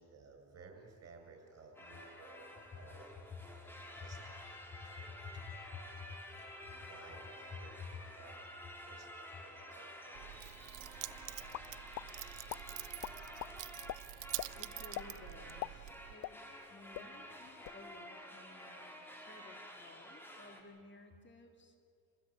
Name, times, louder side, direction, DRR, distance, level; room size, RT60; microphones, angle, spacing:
voice 1, 0.0-3.2 4.0-4.2 4.7-5.1 6.0-6.4 6.7-8.4 8.9-10.5, right 4 dB, 55° right, 3 dB, 7.9 m, -57 dB
sound 1, 1.7-20.6, equal, 5° left, 4.6 m, -51 dB
voice 2, 4.7-6.2 6.6-6.8 7.8-8.0 14.5-21.8, left 5 dB, 40° left, 3 dB, 3.2 m, -53 dB
Keys jangling, 10.1-16.1, right 17 dB, 85° right, 0.6 m, -47 dB
sound 2, 11.5-12.1 12.5-12.6 13.0-13.5 13.9-14.0 14.4-14.5 14.9-15.1 15.5-16.7 16.9-17.1 17.5-17.8, left 16 dB, 75° left, 0.6 m, -42 dB
28.0 x 16.5 x 9.0 m, 2.5 s
cardioid pair, 90°, 30 cm